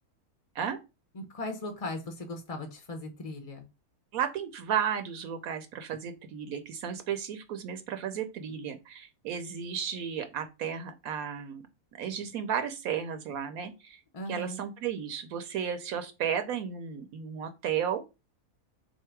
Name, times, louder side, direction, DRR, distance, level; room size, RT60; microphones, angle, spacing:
voice 1, 1.1-3.7 14.1-14.6, left 1 dB, 40° left, 4 dB, 0.5 m, -38 dB
voice 2, 4.1-11.6 12.0-14.0 14.3-18.0, right 8 dB, 75° right, 8 dB, 1.0 m, -33 dB
3.9 x 2.8 x 4.4 m, 0.26 s
omnidirectional pair, 1.6 m